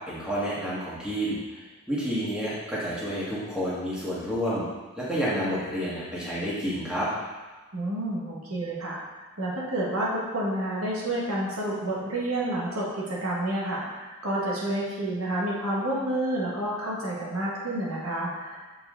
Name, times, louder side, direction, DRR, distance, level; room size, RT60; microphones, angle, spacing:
voice 1, 0.1-1.6 1.9-4.6 5.0-7.1, equal, 5° right, -9 dB, 1.7 m, -29 dB
voice 2, 7.7-18.7, right 1 dB, 75° right, -5 dB, 1.6 m, -29 dB
7.4 x 4.8 x 3.8 m, 1.3 s
head